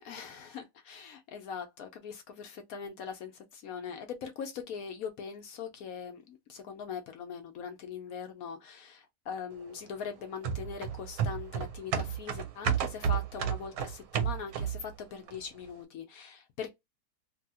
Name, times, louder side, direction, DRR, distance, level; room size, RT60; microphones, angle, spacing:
voice 1, 0.0-16.7, left 6 dB, 70° left, 0.9 m, -41 dB
sound 1, 10.4-14.9 15.3-15.4, right 8 dB, 70° right, 1.0 m, -31 dB
2.7 x 2.7 x 2.7 m
omnidirectional pair, 1.8 m